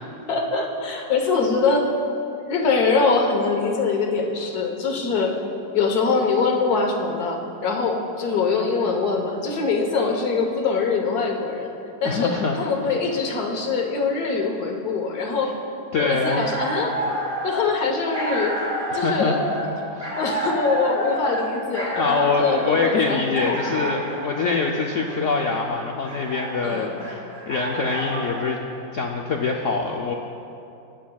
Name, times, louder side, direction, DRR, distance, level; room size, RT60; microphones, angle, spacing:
voice 1, 0.0-1.9 2.4-5.3 5.7-11.7 12.0-15.5 16.0-16.9 17.4-18.6 18.9-19.4 20.2-23.9 26.6-27.0, left 4 dB, 60° left, 2 dB, 1.5 m, -23 dB
voice 2, 12.0-12.6 15.9-16.5 18.9-19.4 19.9-20.2 22.0-28.6 28.9-30.1, left 4 dB, 80° left, 1 dB, 0.6 m, -24 dB
sound 1, 16.0-28.5, equal, 35° right, 2.6 m, -29 dB
18.5 x 9.1 x 2.3 m, 2.7 s
omnidirectional pair, 2.0 m